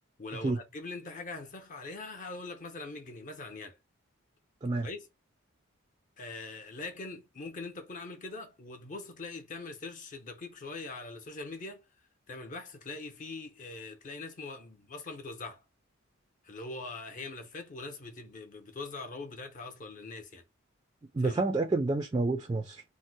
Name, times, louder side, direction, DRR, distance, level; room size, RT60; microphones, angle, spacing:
voice 1, 0.2-3.8 4.8-5.1 6.2-11.9 12.3-15.6 16.4-20.4 21.2-21.6, left 3 dB, 40° left, 0.6 m, -42 dB
voice 2, 21.1-22.8, right 3 dB, 20° right, 0.3 m, -29 dB
2.6 x 2.0 x 3.9 m
head